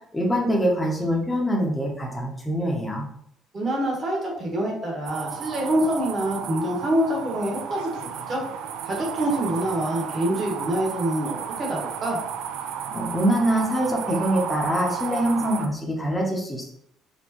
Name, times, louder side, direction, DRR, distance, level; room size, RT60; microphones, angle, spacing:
voice 1, 0.1-3.1 12.9-16.7, equal, 5° left, -2 dB, 0.7 m, -24 dB
voice 2, 3.5-8.4 8.8-12.2, right 1 dB, 30° right, -1 dB, 1.2 m, -26 dB
sound 1, 5.0-15.7, right 8 dB, 85° right, 0.4 m, -33 dB
4.4 x 3.7 x 2.9 m, 0.71 s
cardioid pair, 170°, 0 cm